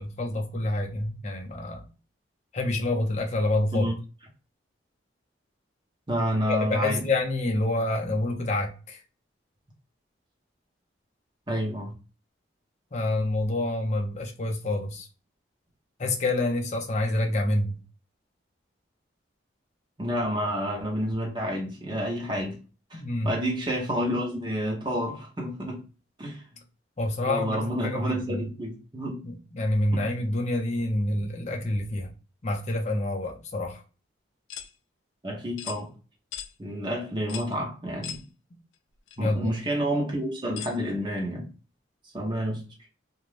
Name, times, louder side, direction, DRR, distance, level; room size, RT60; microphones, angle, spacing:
voice 1, 0.0-1.8 2.5-3.9 6.5-9.0 12.9-15.1 16.0-17.8 22.9-23.3 27.0-28.4 29.2-32.1 32.4-33.8 39.2-39.5, left 2 dB, 35° left, 0.5 m, -27 dB
voice 2, 6.1-7.0 11.5-11.9 20.0-22.6 22.9-25.8 26.2-26.4 27.3-29.2 29.9-30.0 35.2-35.9 36.6-38.2 39.2-41.5 42.1-42.6, equal, 25° right, 0.8 m, -29 dB
sound 1, 34.5-34.7 35.6-35.8 36.3-36.5 37.3-37.5 38.0-38.2 39.1-39.2 40.6-40.8, left 10 dB, 85° left, 0.4 m, -38 dB
2.5 x 2.1 x 3.1 m
head